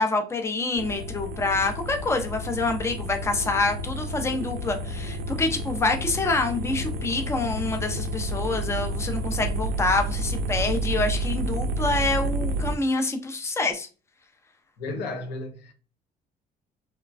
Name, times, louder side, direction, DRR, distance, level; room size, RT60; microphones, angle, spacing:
voice 1, 0.0-13.9, left 3 dB, 15° left, 0.5 m, -26 dB
sound 1, 0.8-12.8, right 1 dB, 65° right, 0.5 m, -30 dB
voice 2, 14.8-15.7, left 2 dB, 90° left, 0.7 m, -33 dB
3.1 x 2.2 x 2.4 m
cardioid pair, 110°, 17 cm